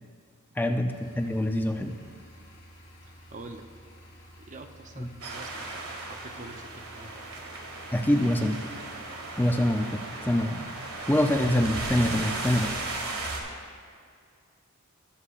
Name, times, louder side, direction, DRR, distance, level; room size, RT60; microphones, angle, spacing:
voice 1, 0.6-2.0 5.0-5.1 7.9-8.6 9.4-10.7 11.1-12.7, left 1 dB, 10° left, 5 dB, 0.4 m, -25 dB
sound 1, 0.9-13.0, equal, 55° left, 2.5 m, -52 dB
voice 2, 3.0-3.7 4.4-7.3, right 3 dB, 35° right, 6 dB, 0.7 m, -46 dB
sound 2, 5.2-13.4, right 2 dB, 80° right, 1.5 m, -36 dB
19.5 x 7.0 x 2.5 m, 2.2 s
head